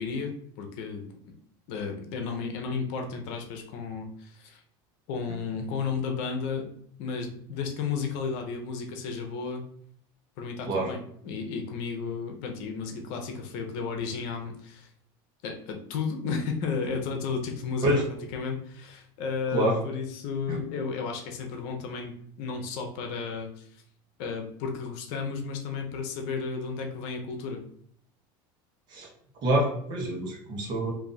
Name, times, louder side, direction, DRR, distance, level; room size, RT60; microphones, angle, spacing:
voice 1, 0.0-1.3 1.7-4.6 5.1-6.7 7.0-9.6 10.4-14.9 15.4-17.9 18.3-23.7 24.2-27.6, left 5 dB, 65° left, 3 dB, 0.8 m, -33 dB
voice 2, 29.4-30.9, right 1 dB, 40° right, 0 dB, 1.1 m, -26 dB
2.7 x 2.6 x 3.9 m, 0.62 s
supercardioid pair, 140°, 12 cm